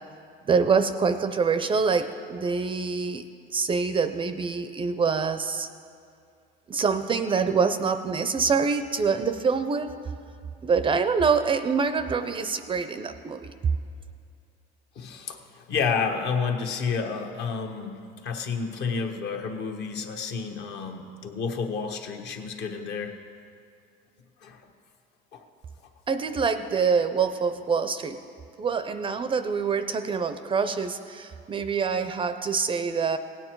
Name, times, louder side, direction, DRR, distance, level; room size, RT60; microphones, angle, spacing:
voice 1, 0.5-3.2 3.5-5.7 6.7-9.9 10.6-13.5 26.1-28.2 28.6-33.2, right 5 dB, 25° right, 10 dB, 0.5 m, -25 dB
voice 2, 14.9-23.1 24.4-24.6 25.3-25.4, left 5 dB, 60° left, 4 dB, 1.2 m, -30 dB
17.5 x 8.9 x 4.6 m, 2.4 s
cardioid pair, 125°, 20 cm